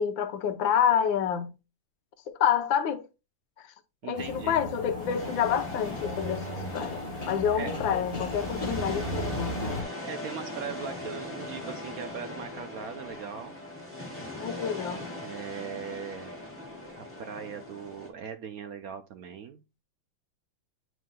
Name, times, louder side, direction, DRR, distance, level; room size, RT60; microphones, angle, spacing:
voice 1, 0.0-1.5 2.3-3.1 4.1-9.5 14.4-15.0, left 8 dB, 85° left, 1.6 m, -28 dB
voice 2, 4.0-4.6 7.5-7.7 9.9-13.6 15.2-16.3 17.0-19.6, right 7 dB, 65° right, 0.9 m, -39 dB
sound 1, 4.1-9.8, equal, 30° left, 0.7 m, -35 dB
sound 2, 5.0-18.1, left 1 dB, 5° left, 3.0 m, -40 dB
9.2 x 4.7 x 2.2 m
omnidirectional pair, 2.0 m